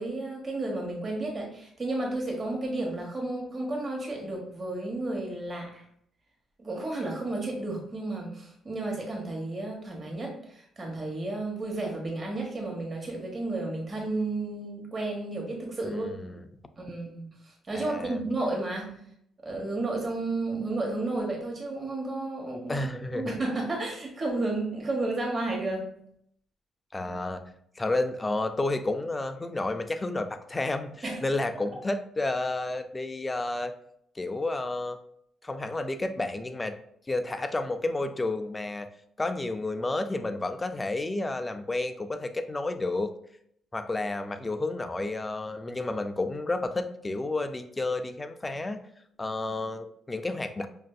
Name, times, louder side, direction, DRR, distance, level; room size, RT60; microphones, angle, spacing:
voice 1, 0.0-5.8 6.6-16.1 16.8-19.0 19.4-22.9 23.1-25.9 31.0-31.3, right 2 dB, 35° right, 0 dB, 1.1 m, -32 dB
voice 2, 15.8-16.4 17.7-18.2 22.7-23.4 26.9-27.4 27.8-33.7 34.2-35.0 35.4-36.8 37.1-38.9 39.2-43.1 43.7-48.8 49.2-50.7, left 2 dB, 20° left, 8 dB, 0.4 m, -31 dB
5.4 x 2.5 x 2.3 m, 0.70 s
cardioid pair, 90°, 0 cm